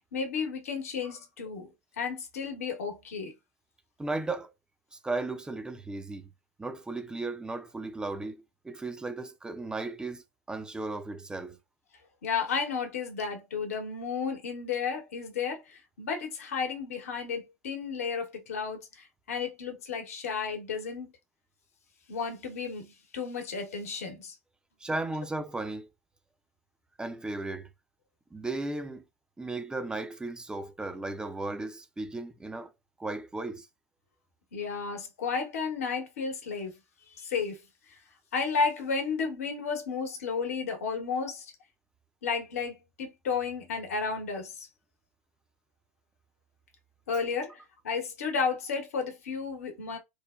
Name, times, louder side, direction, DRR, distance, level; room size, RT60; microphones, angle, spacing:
voice 1, 0.1-3.3 12.2-21.1 22.1-24.3 34.5-36.7 37.1-37.6 37.9-38.0 38.3-41.5 42.2-44.7 47.1-50.0, left 5 dB, 75° left, 1.0 m, -33 dB
voice 2, 4.0-4.5 4.9-6.3 6.6-11.6 24.8-25.9 27.0-27.7 28.3-29.0 29.4-32.7 33.0-33.7, right 2 dB, 10° right, 0.5 m, -35 dB
3.1 x 2.0 x 2.3 m
hypercardioid pair, 80°, 8 cm